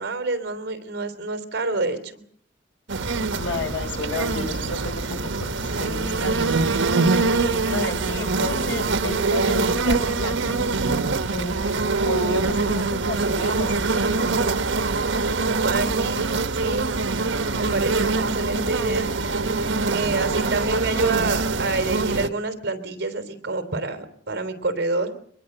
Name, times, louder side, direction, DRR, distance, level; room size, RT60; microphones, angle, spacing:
voice 1, 0.0-2.2 7.3-8.0 15.6-16.9 17.6-19.1 19.9-25.1, right 3 dB, 55° right, 9 dB, 3.4 m, -27 dB
sound 1, 2.9-22.3, right 3 dB, 85° right, 1.3 m, -24 dB
voice 2, 3.4-5.5 5.8-6.8 7.7-10.7 11.3-11.8 12.0-14.4, left 2 dB, 75° left, 4 dB, 5.8 m, -32 dB
24.0 x 21.5 x 7.9 m, 0.63 s
head